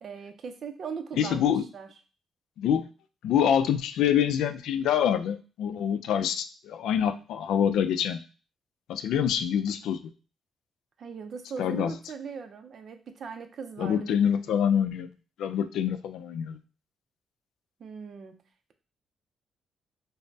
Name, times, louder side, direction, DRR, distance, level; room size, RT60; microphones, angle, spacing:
voice 1, 0.0-1.9 11.0-14.2 17.8-18.4, right 6 dB, 45° right, 7 dB, 0.4 m, -39 dB
voice 2, 1.2-1.6 2.6-2.9 3.2-8.2 8.9-10.0 11.6-11.9 13.8-15.1 15.4-16.6, left 9 dB, 85° left, 11 dB, 0.3 m, -26 dB
5.1 x 2.0 x 2.6 m, 0.36 s
cardioid pair, 160°, 0 cm